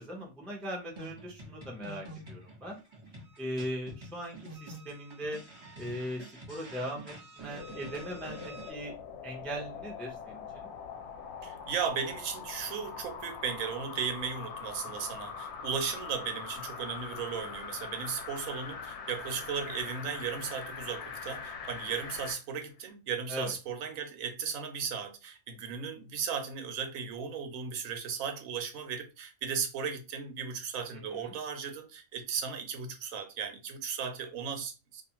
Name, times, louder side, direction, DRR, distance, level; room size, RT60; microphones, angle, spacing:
voice 1, 0.0-2.8 3.4-5.4 5.8-6.2 6.5-8.9 9.2-10.7 23.3-23.5 30.9-31.3, equal, ahead, 0.3 m, -39 dB
sound 1, 1.0-8.7, right 2 dB, 25° right, 0.8 m, -47 dB
sound 2, 7.4-22.4 22.9-23.0, left 6 dB, 65° left, 0.7 m, -42 dB
voice 2, 11.4-35.0, right 6 dB, 75° right, 0.9 m, -36 dB
2.4 x 2.4 x 2.8 m
omnidirectional pair, 1.5 m